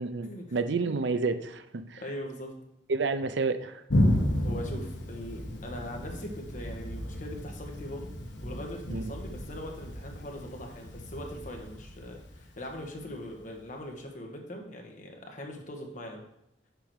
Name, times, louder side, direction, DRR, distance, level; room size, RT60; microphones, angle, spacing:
voice 1, 0.0-2.0 2.9-3.8 8.9-9.1, right 4 dB, 70° right, 11 dB, 0.6 m, -30 dB
voice 2, 2.0-2.5 4.4-8.1 8.4-16.2, left 1 dB, 45° left, 2 dB, 1.4 m, -41 dB
Thunder, 3.9-13.3, left 1 dB, 75° left, 1.2 m, -32 dB
6.8 x 4.9 x 6.3 m, 0.79 s
head